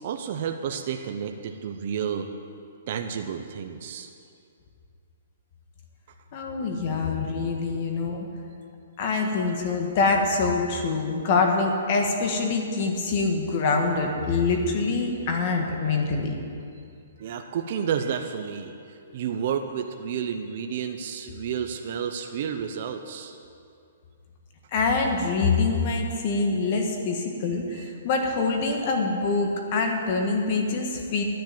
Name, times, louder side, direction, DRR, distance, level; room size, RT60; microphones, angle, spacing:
voice 1, 0.0-2.3 2.9-4.1 7.7-8.3 17.2-23.4 27.7-27.9 29.8-29.9, right 7 dB, 35° right, 5 dB, 0.6 m, -31 dB
voice 2, 6.3-8.3 9.0-16.3 24.7-31.2, left 4 dB, 30° left, 3 dB, 1.4 m, -25 dB
11.5 x 10.5 x 7.6 m, 2.5 s
hypercardioid pair, 180°, 0 cm